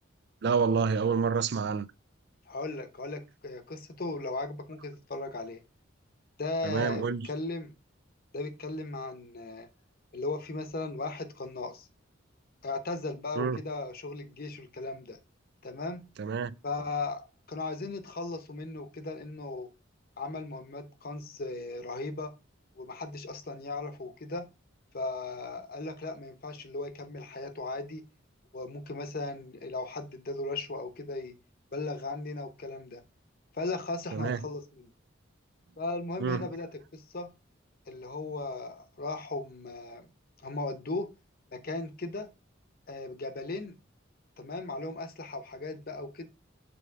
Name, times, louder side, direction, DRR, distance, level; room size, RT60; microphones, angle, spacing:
voice 1, 0.4-1.9 6.6-7.3 13.4-13.6 16.2-16.5 34.1-34.4 36.2-36.5, right 5 dB, 55° right, 0.4 m, -28 dB
voice 2, 2.5-5.6 6.4-7.7 8.3-9.7 10.1-11.9 12.6-15.2 15.6-16.0 16.6-19.7 20.2-22.3 22.7-24.5 24.9-28.0 28.5-31.3 31.7-33.0 33.5-34.9 35.8-37.3 37.9-40.1 40.4-41.1 41.5-42.3 42.9-43.7 44.4-46.3, left 3 dB, 50° left, 0.9 m, -37 dB
7.0 x 3.2 x 4.7 m
head